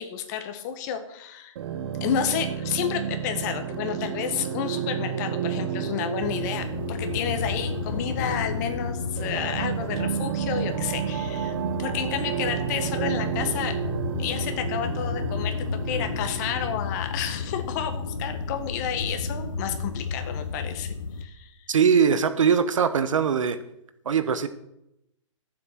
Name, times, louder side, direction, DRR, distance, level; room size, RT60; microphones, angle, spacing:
voice 1, 0.0-1.5 2.0-11.5 11.8-13.7 14.2-15.5 15.8-20.9 21.2-21.5, left 8 dB, 35° left, 6 dB, 1.6 m, -30 dB
sound 1, 1.6-16.8, right 9 dB, 50° right, 1.0 m, -31 dB
sound 2, 6.2-21.2, left 5 dB, 90° left, 1.2 m, -33 dB
voice 2, 21.7-23.6 24.0-24.5, right 6 dB, 75° right, 12 dB, 1.0 m, -21 dB
12.5 x 7.6 x 6.0 m, 0.82 s
hypercardioid pair, 150°, 17 cm